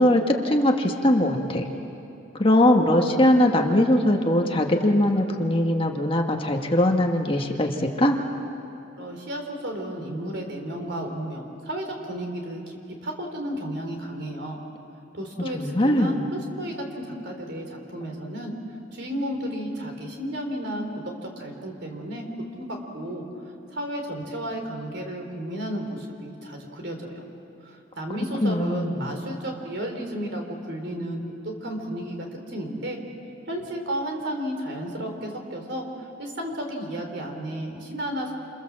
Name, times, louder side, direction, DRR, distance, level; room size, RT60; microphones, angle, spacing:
voice 1, 0.0-1.7 2.4-8.2 15.5-16.2 28.4-29.0, left 1 dB, 30° left, 2 dB, 1.6 m, -21 dB
voice 2, 9.0-14.6 15.1-18.5 18.9-20.8 21.4-22.3 22.5-23.3 23.7-27.2 27.6-33.0 33.5-38.4, right 1 dB, 60° right, 3 dB, 4.0 m, -33 dB
28.0 x 27.5 x 7.6 m, 2.8 s
head